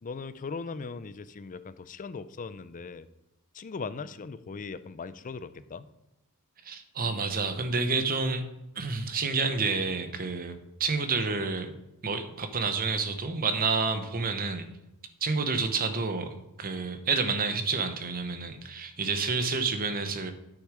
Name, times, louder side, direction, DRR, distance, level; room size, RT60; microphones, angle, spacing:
voice 1, 0.0-3.1 3.5-5.9, left 4 dB, 35° left, 14 dB, 0.4 m, -39 dB
voice 2, 6.6-8.4 8.7-11.7 12.0-14.7 15.2-20.3, right 4 dB, 40° right, 9 dB, 0.9 m, -29 dB
8.7 x 6.5 x 4.8 m, 0.95 s
head